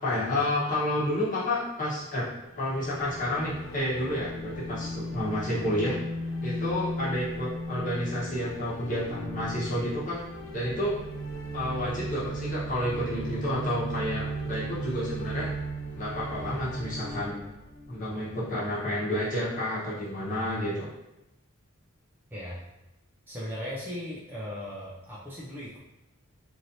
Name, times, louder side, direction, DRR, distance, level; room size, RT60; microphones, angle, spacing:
voice 1, 0.0-2.3 2.5-6.0 6.4-10.2 10.5-10.9 11.5-15.5 15.9-17.4 17.9-20.9, left 1 dB, 35° left, -8 dB, 1.0 m, -30 dB
sound 1, 2.5-18.5, right 1 dB, 55° left, 0.5 m, -36 dB
voice 2, 23.3-25.8, equal, 10° right, -7 dB, 0.4 m, -37 dB
3.1 x 2.7 x 2.7 m, 0.92 s
head